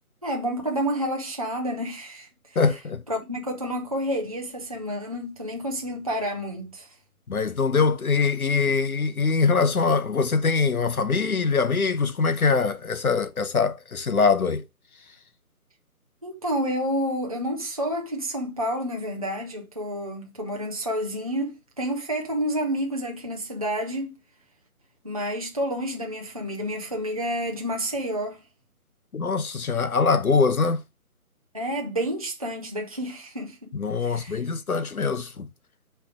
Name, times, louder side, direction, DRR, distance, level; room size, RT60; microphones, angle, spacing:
voice 1, 0.2-2.6 3.1-6.9 16.2-24.2 25.0-28.4 31.5-33.7 34.0-34.4, equal, 25° right, 0.6 m, -29 dB
voice 2, 2.6-3.0 7.3-14.6 29.1-30.8 33.7-35.5, left 4 dB, 70° left, 0.8 m, -23 dB
7.8 x 3.4 x 4.8 m
figure-of-eight pair, 155°, 45 cm